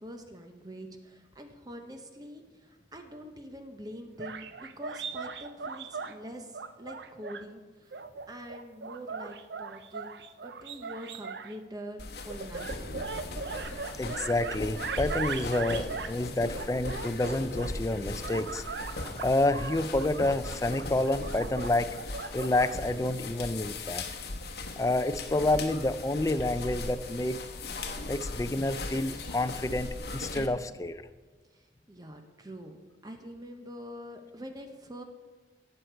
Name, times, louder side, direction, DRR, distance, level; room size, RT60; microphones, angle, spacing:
voice 1, 0.0-12.0 12.2-13.1 31.5-35.0, equal, 20° right, 5 dB, 0.8 m, -45 dB
sound 1, 4.2-6.1 6.5-7.4 7.9-11.6 12.3-16.2 16.5-17.7 18.1-22.9, right 5 dB, 70° right, 0.5 m, -39 dB
sound 2, 12.0-30.5, left 2 dB, 60° left, 1.1 m, -38 dB
voice 2, 14.0-18.6 19.2-21.9 22.3-24.0 24.8-27.4 28.1-31.0, left 2 dB, 20° left, 11 dB, 0.4 m, -29 dB
17.5 x 6.5 x 4.5 m, 1.4 s
head